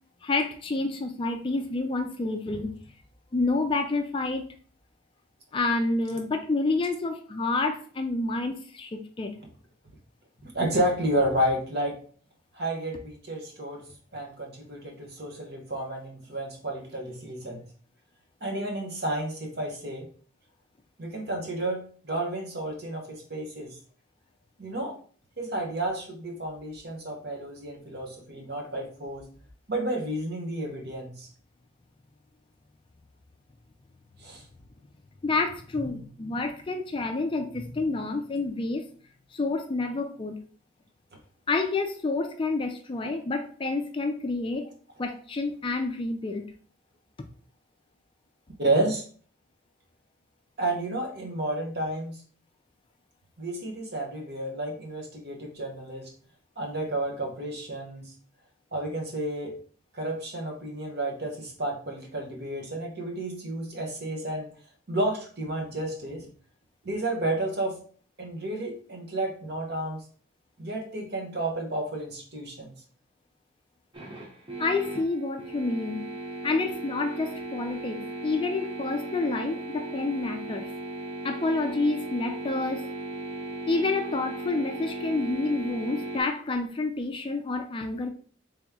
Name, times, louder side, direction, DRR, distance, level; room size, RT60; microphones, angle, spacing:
voice 1, 0.2-2.8 3.3-4.5 5.5-9.4 35.2-38.8 39.3-40.4 41.5-44.7 45.0-46.5 47.2-47.3 74.6-76.1 76.4-80.7 81.2-82.8 83.7-88.1, left 3 dB, 25° left, 5 dB, 0.4 m, -29 dB
voice 2, 10.4-12.0 12.5-13.8 14.1-17.6 18.4-20.1 21.0-23.7 24.6-25.0 25.4-29.3 29.7-31.3 34.2-34.4 48.6-49.0 50.6-52.2 53.4-56.1 56.6-58.1 58.7-59.5 59.9-64.5 64.9-66.3 66.8-67.8 68.2-70.0 70.6-72.7, right 1 dB, 50° right, 2 dB, 1.0 m, -31 dB
sound 1, 73.9-86.2, right 1 dB, 25° right, 0.7 m, -37 dB
3.4 x 3.0 x 3.6 m, 0.43 s
head